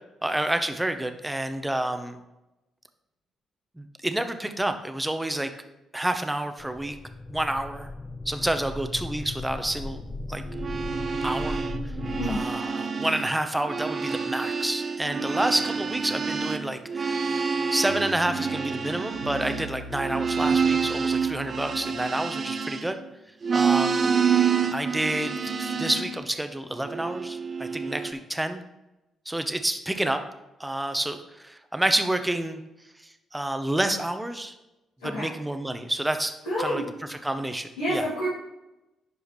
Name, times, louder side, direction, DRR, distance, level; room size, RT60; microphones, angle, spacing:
voice 1, 0.2-2.2 3.8-5.5 5.9-7.0 7.3-7.9 8.2-10.0 10.3-10.4 11.2-12.0 12.2-23.0 23.5-24.1 24.7-28.6 29.3-30.2 30.6-32.6 33.0-34.5 35.0-38.1, right 1 dB, 10° right, 8 dB, 0.9 m, -29 dB
sound 1, 6.6-12.4, left 2 dB, 30° left, 0.6 m, -36 dB
sound 2, 10.5-13.3 13.6-23.1 23.4-26.2 26.8-28.1, right 6 dB, 45° right, 0.7 m, -28 dB
sound 3, 17.9-22.6, right 2 dB, 80° right, 1.1 m, -42 dB
voice 2, 36.4-36.8 37.8-38.3, equal, 90° left, -13 dB, 2.6 m, -28 dB
10.5 x 4.9 x 3.2 m, 0.97 s
hypercardioid pair, 45°, 0 cm